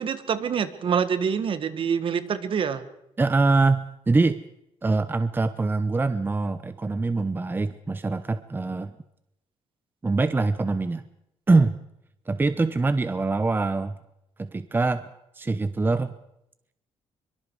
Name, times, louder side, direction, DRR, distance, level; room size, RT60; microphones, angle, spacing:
voice 1, 0.0-2.8, right 7 dB, 55° right, 12 dB, 1.8 m, -26 dB
voice 2, 3.2-4.4 4.8-8.9 10.0-11.0 11.5-11.8 12.3-14.0 14.4-15.0 15.3-16.1, right 3 dB, 20° right, 12 dB, 0.9 m, -23 dB
23.5 x 23.0 x 4.9 m, 0.81 s
cardioid pair, 100°, 11 cm